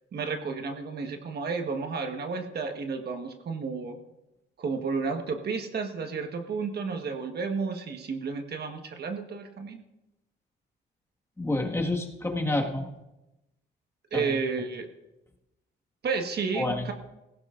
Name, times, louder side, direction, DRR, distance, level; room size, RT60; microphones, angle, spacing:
voice 1, 0.1-4.0 4.6-9.8 14.1-14.9 16.0-16.9, right 4 dB, 55° right, 5 dB, 1.5 m, -32 dB
voice 2, 11.4-12.9 14.1-14.2 16.5-16.9, left 2 dB, 15° left, 1 dB, 1.8 m, -28 dB
18.5 x 16.0 x 2.6 m, 0.96 s
cardioid pair, 90°, 20 cm